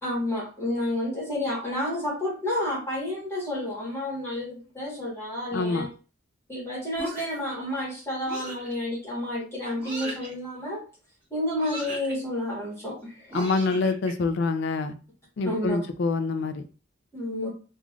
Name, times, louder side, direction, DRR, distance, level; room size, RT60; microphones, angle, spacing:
voice 1, 0.0-5.9 6.5-10.8 11.3-13.4 15.4-15.8 17.1-17.5, left 1 dB, 15° left, -6 dB, 1.3 m, -30 dB
voice 2, 5.5-5.9 13.3-14.9 15.4-16.6, left 3 dB, 60° left, 9 dB, 0.4 m, -26 dB
sound 1, 7.0-7.5 8.3-8.7 9.8-10.3 11.6-12.2 13.3-14.1, right 1 dB, 10° right, 1.3 m, -37 dB
3.1 x 2.4 x 2.3 m, 0.36 s
head